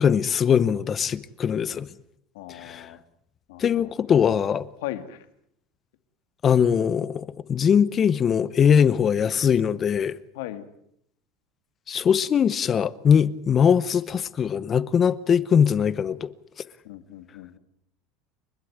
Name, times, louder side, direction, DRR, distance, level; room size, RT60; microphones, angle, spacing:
voice 1, 0.0-1.9 2.5-2.9 3.6-4.7 6.4-10.2 11.9-16.3, left 7 dB, 25° left, 0.9 m, -21 dB
voice 2, 2.3-3.0 3.5-3.9 4.8-5.2 10.3-10.7 16.8-17.6, left 13 dB, 80° left, 2.3 m, -37 dB
30.0 x 12.5 x 9.9 m
supercardioid pair, 150°, 0 cm